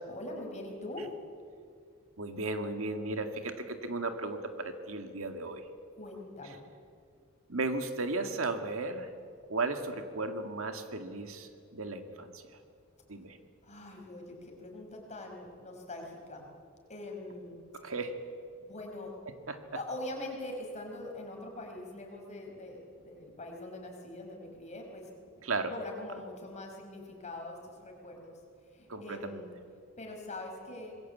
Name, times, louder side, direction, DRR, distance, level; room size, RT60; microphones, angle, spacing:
voice 1, 0.1-1.1 6.0-6.6 13.6-16.5 16.9-17.6 18.6-19.1 19.7-25.1 25.4-25.5 25.7-28.4 28.7-29.5 30.0-30.9, left 2 dB, 35° left, 1 dB, 5.3 m, -43 dB
voice 2, 2.2-5.6 7.5-9.1 9.5-12.4 13.1-13.4 17.7-18.1 19.5-19.6 25.4-25.7 28.9-29.4, right 3 dB, 75° right, 6 dB, 2.1 m, -35 dB
26.0 x 21.0 x 8.5 m, 2.2 s
head